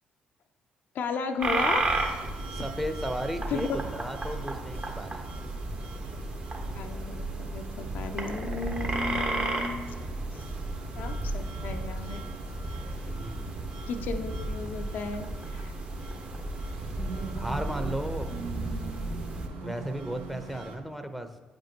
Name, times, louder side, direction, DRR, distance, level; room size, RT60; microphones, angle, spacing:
voice 1, 0.9-1.9 3.5-3.7 6.7-9.9 10.3-10.4 10.9-12.2 13.9-15.3 15.5-15.7, left 4 dB, 60° left, 6 dB, 0.5 m, -34 dB
sound 1, 1.4-19.5, right 2 dB, 35° right, 1.2 m, -34 dB
sound 2, 1.6-20.8, right 4 dB, 70° right, 0.7 m, -43 dB
voice 2, 2.5-5.2 13.2-13.4 17.3-18.3 19.6-21.3, equal, ahead, 8 dB, 0.8 m, -34 dB
8.6 x 5.1 x 2.9 m, 1.1 s
hypercardioid pair, 45°, 4 cm